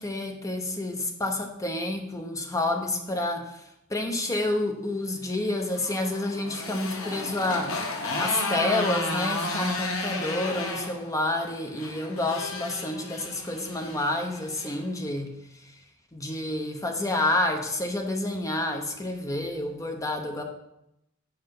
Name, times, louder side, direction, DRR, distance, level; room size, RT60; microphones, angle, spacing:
voice 1, 0.0-3.6 3.9-7.8 8.2-15.3 16.1-20.4, left 2 dB, 15° left, 4 dB, 0.8 m, -29 dB
Motorcycle, 5.4-14.8, left 2 dB, 75° left, 1.2 m, -33 dB
5.6 x 5.2 x 5.3 m, 0.83 s
head